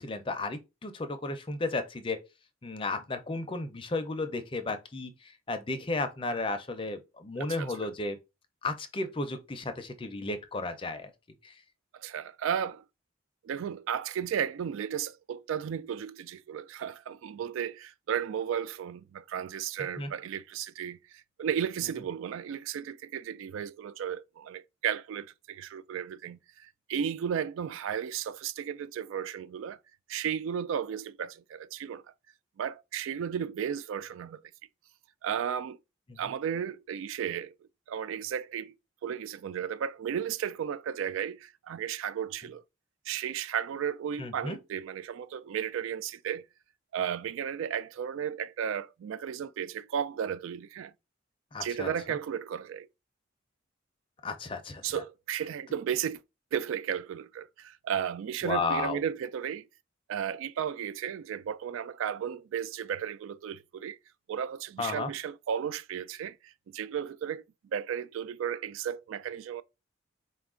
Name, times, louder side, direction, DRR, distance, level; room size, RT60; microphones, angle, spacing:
voice 1, 0.0-2.2 2.6-8.2 8.6-11.1 11.4-11.5 20.0-20.1 36.1-36.2 44.2-44.6 51.5-51.9 54.2-54.9 58.4-59.0 64.8-65.1, left 3 dB, 25° left, 0.5 m, -33 dB
voice 2, 7.4-7.7 11.9-12.8 13.4-29.8 30.1-32.0 32.6-34.4 35.2-35.8 36.2-37.5 37.9-38.8 39.0-42.6 43.1-46.5 46.9-50.9 51.6-52.9 54.8-56.2 56.5-59.7 60.1-64.0 64.3-67.4 67.7-69.6, right 8 dB, 80° right, 0.3 m, -34 dB
4.2 x 2.3 x 3.6 m
head